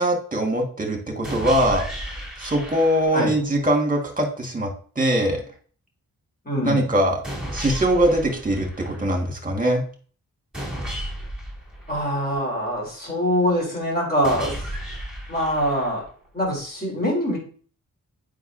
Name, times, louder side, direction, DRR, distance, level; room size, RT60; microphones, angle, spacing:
voice 1, 0.0-1.9 2.4-4.7 4.9-5.4 6.6-7.2 7.5-9.8, right 1 dB, 25° right, 2 dB, 1.6 m, -22 dB
sound 1, 1.2-3.3 7.2-9.3 10.5-12.6 14.2-16.3, equal, ahead, 3.1 m, -34 dB
voice 2, 6.4-6.8 11.9-14.6 15.3-16.0 16.3-17.4, equal, 25° left, -3 dB, 3.3 m, -24 dB
7.9 x 5.2 x 2.6 m, 0.43 s
wide cardioid pair, 75°, 35 cm